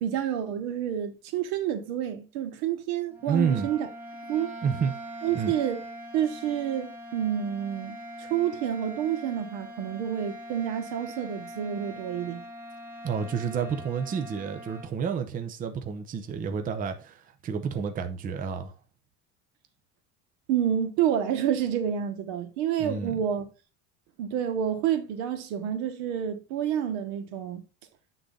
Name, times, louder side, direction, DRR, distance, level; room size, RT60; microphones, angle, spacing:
voice 1, 0.0-3.9 4.3-4.5 5.2-5.8 6.1-12.4 20.5-23.5 24.2-27.6, right 9 dB, 90° right, 1.3 m, -29 dB
sound 1, 3.1-14.9, equal, 5° right, 1.5 m, -42 dB
voice 2, 3.3-3.7 4.6-4.9 5.3-5.5 13.0-18.7 22.8-23.2, right 6 dB, 25° right, 0.6 m, -30 dB
8.3 x 3.9 x 3.7 m
cardioid pair, 150°, 32 cm